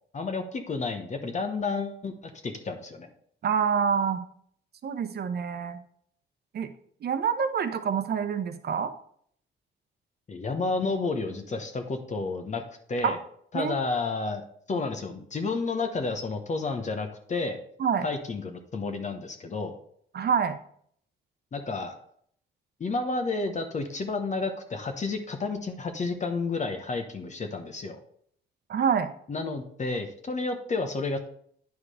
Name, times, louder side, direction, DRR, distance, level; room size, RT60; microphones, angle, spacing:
voice 1, 0.1-3.1 10.3-13.2 13.5-17.6 18.0-19.8 21.5-22.0 22.8-28.0 29.3-31.3, left 3 dB, 35° left, 6 dB, 1.0 m, -31 dB
voice 2, 3.4-4.2 4.8-5.8 6.5-6.7 7.0-8.9 13.0-13.2 13.5-13.7 17.8-18.0 20.1-20.6 28.7-29.1, right 7 dB, 55° right, 9 dB, 0.9 m, -26 dB
9.4 x 4.8 x 4.9 m, 0.64 s
cardioid pair, 90°, 20 cm